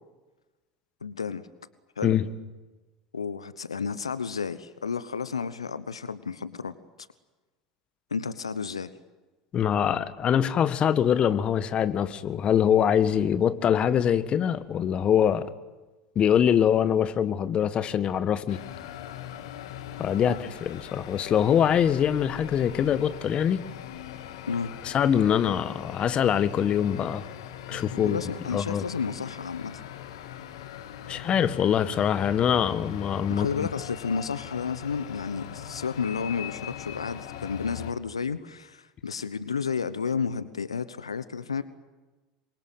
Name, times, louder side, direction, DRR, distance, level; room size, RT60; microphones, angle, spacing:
voice 1, 1.0-1.4 2.0-2.2 3.1-6.7 8.1-8.9 20.2-20.3 24.5-24.7 27.7-29.8 33.3-41.6, left 5 dB, 85° left, 1.0 m, -32 dB
voice 2, 9.5-15.5 16.2-18.6 20.0-23.6 24.8-27.3 27.7-28.2 28.5-28.9 31.1-33.5, left 9 dB, 40° left, 1.7 m, -24 dB
sound 1, 18.5-37.9, left 11 dB, 70° left, 2.0 m, -41 dB
27.0 x 23.5 x 9.2 m
figure-of-eight pair, 75°, 3 cm